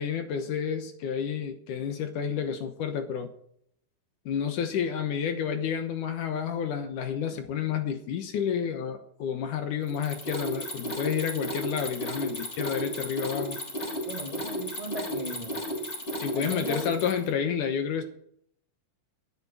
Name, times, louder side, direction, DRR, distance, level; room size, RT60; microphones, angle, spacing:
voice 1, 0.0-3.3 4.3-13.6 16.2-18.0, left 7 dB, 65° left, 7 dB, 2.3 m, -30 dB
Mechanisms, 9.9-17.3, equal, 20° left, 4.0 m, -34 dB
voice 2, 14.0-15.6 16.3-16.9, equal, 85° right, 1 dB, 0.3 m, -37 dB
11.5 x 8.4 x 9.8 m, 0.68 s
omnidirectional pair, 4.5 m